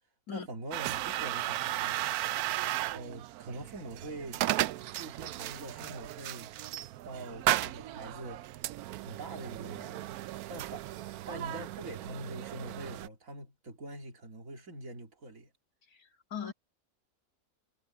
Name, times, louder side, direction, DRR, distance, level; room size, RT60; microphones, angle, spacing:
voice 1, 0.3-2.0 2.9-4.4 4.9-6.5 7.0-8.4 9.0-10.2 10.5-10.9 11.2-15.5, right 1 dB, 65° right, 3.1 m, -44 dB
sound 1, 0.7-13.1, right 14 dB, 85° right, 1.1 m, -35 dB
voice 2, 16.0-16.5, left 7 dB, 80° left, 2.6 m, -39 dB
omnidirectional pair, 1.5 m